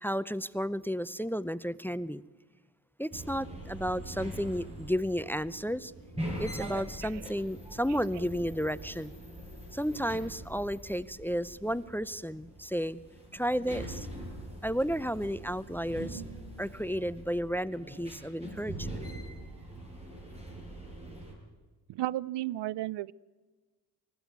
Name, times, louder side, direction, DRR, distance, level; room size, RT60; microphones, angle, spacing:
voice 1, 0.0-2.2 3.0-5.9 6.4-9.1 9.7-13.0 13.3-14.1 14.6-16.2 16.6-18.9, equal, 5° left, 19 dB, 0.5 m, -32 dB
sound 1, 3.1-21.3, right 1 dB, 15° right, 7.3 m, -43 dB
voice 2, 6.6-7.3 7.9-8.3 21.9-23.1, right 15 dB, 70° right, 23 dB, 0.6 m, -35 dB
20.0 x 15.0 x 9.3 m, 1.3 s
cardioid pair, 60°, 43 cm